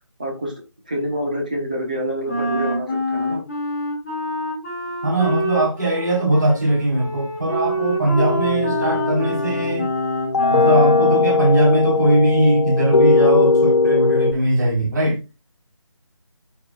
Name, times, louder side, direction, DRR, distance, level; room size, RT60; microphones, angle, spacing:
voice 1, 0.2-0.5 0.8-3.4, equal, 15° right, 1.1 m, -26 dB
Wind instrument woodwind instrument, 2.3-11.3, equal, 10° left, 1.8 m, -27 dB
voice 2, 5.0-9.9 10.5-15.2, right 1 dB, 35° right, 4.6 m, -20 dB
sound 1, 8.2-14.3, left 4 dB, 55° left, 1.6 m, -19 dB
13.5 x 5.0 x 2.4 m
figure-of-eight pair, 175°, 17 cm